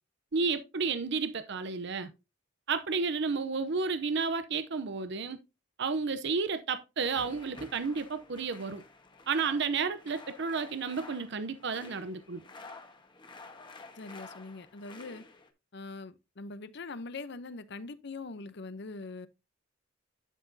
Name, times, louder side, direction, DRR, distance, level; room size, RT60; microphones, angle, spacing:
voice 1, 0.3-2.1 2.7-5.4 5.8-8.8 9.3-12.4, right 4 dB, 65° right, 0.7 m, -32 dB
sound 1, 7.0-15.5, left 3 dB, 25° left, 1.3 m, -51 dB
voice 2, 14.0-15.2 15.7-19.3, left 3 dB, 60° left, 0.7 m, -42 dB
11.0 x 6.0 x 2.7 m
head